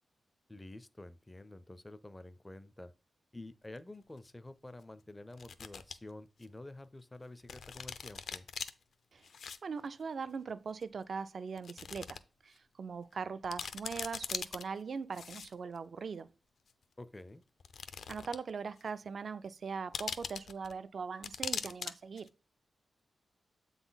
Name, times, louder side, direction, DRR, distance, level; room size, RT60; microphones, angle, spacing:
voice 1, 0.5-2.9 3.3-8.5 17.0-17.4, left 2 dB, 15° left, 0.4 m, -49 dB
sound 1, 3.8-3.9 5.3-5.9 6.4-6.5 7.5-8.7 9.2-9.6 9.8-9.9 10.8-10.9 11.6-12.2 12.6-12.7 13.1-13.2 13.4-14.6 15.1-15.8 16.7-16.8 17.6-18.5 18.8-18.9 19.9-20.7 21.2-21.9 22.2-22.3, left 6 dB, 65° left, 0.5 m, -41 dB
voice 2, 9.6-16.3 18.1-22.3, right 5 dB, 50° right, 0.4 m, -41 dB
7.9 x 4.0 x 3.9 m
wide cardioid pair, 160°, 0 cm